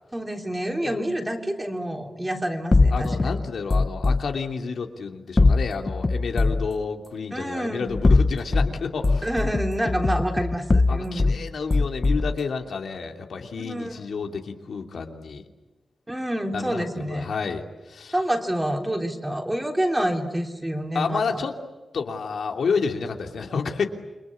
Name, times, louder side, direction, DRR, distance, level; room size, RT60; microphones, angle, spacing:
voice 1, 0.1-3.4 7.3-8.0 9.2-11.3 13.6-14.0 16.1-17.3 18.1-21.4, right 1 dB, 10° right, 3 dB, 3.4 m, -28 dB
sound 1, 2.7-4.2 5.4-6.7 7.9-8.7 9.0-11.4 11.7-12.4, left 3 dB, 30° left, 0.9 m, -21 dB
voice 2, 2.9-9.3 10.9-15.4 16.5-18.1 20.9-21.5 21.9-23.9, left 5 dB, 80° left, 4 dB, 2.9 m, -30 dB
29.0 x 24.0 x 8.6 m, 1.2 s
wide cardioid pair, 115°, 0 cm